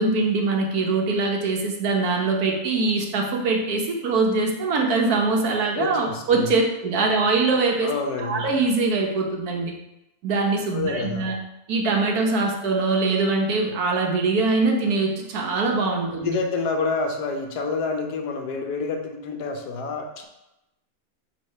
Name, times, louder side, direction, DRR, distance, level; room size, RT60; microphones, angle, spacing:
voice 1, 0.0-7.9 8.2-9.7 10.2-11.4 11.7-16.3, right 3 dB, 70° right, 1 dB, 1.4 m, -23 dB
voice 2, 5.8-6.5 7.8-8.5 10.7-11.3 16.2-20.2, left 4 dB, 85° left, 3 dB, 1.4 m, -28 dB
4.7 x 3.7 x 5.4 m, 0.91 s
omnidirectional pair, 1.7 m